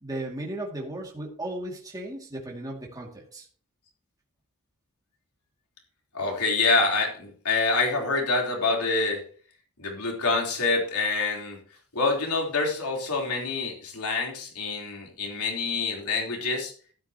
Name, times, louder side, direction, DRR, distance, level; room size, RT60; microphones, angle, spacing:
voice 1, 0.0-3.5, right 1 dB, 15° right, -1 dB, 2.3 m, -36 dB
voice 2, 6.1-9.2 9.8-11.6 11.9-16.7, left 3 dB, 90° left, 0 dB, 3.7 m, -26 dB
12.5 x 12.0 x 2.9 m, 0.41 s
head